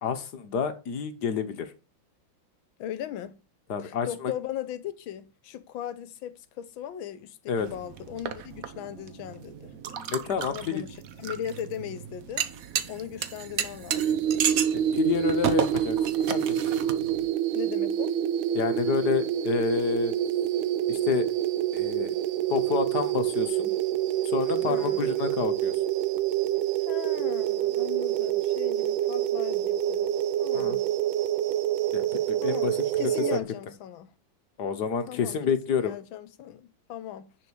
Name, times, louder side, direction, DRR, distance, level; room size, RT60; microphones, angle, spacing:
voice 1, 0.0-1.7 3.7-4.3 7.5-7.7 10.1-10.8 14.7-16.0 16.3-16.6 18.5-20.1 20.9-21.3 21.7-22.1 22.5-23.7 24.3-25.7 30.5-30.8 31.9-33.4 34.6-35.9, left 6 dB, 60° left, 1.4 m, -29 dB
voice 2, 2.8-3.4 3.8-9.7 10.5-12.5 12.9-14.4 17.5-18.2 24.7-25.1 26.8-30.1 30.4-30.9 32.4-34.1 35.1-35.4 35.7-37.3, left 10 dB, 80° left, 1.6 m, -38 dB
sound 1, 7.6-17.3, right 8 dB, 55° right, 1.0 m, -34 dB
sound 2, 13.9-33.4, right 11 dB, 85° right, 1.5 m, -27 dB
10.0 x 4.3 x 6.2 m
omnidirectional pair, 2.2 m